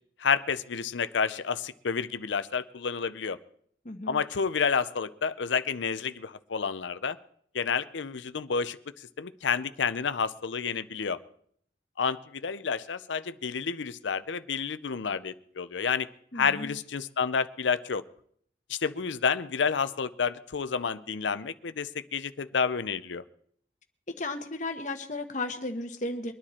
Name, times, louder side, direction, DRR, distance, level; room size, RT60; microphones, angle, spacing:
voice 1, 0.2-3.4 4.1-7.2 7.5-8.8 9.2-11.2 12.0-16.1 16.3-18.0 18.7-23.2, left 6 dB, 85° left, 13 dB, 0.6 m, -30 dB
voice 2, 3.8-4.2 16.3-16.8 24.1-26.3, left 2 dB, 40° left, 7 dB, 1.3 m, -34 dB
23.5 x 9.9 x 4.3 m, 0.64 s
head